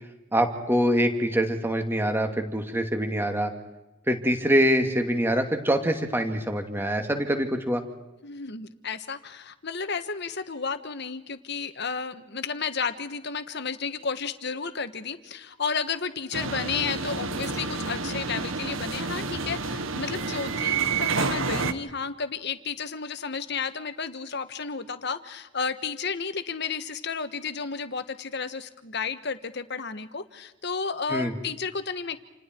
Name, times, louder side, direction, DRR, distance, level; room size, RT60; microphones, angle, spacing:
voice 1, 0.3-3.5 4.1-7.8 31.1-31.3, equal, 10° right, 5 dB, 2.5 m, -24 dB
voice 2, 8.2-32.2, left 5 dB, 55° left, 11 dB, 1.5 m, -32 dB
sound 1, 16.3-21.7, right 4 dB, 80° right, 1.5 m, -29 dB
29.0 x 28.5 x 4.6 m, 1.0 s
head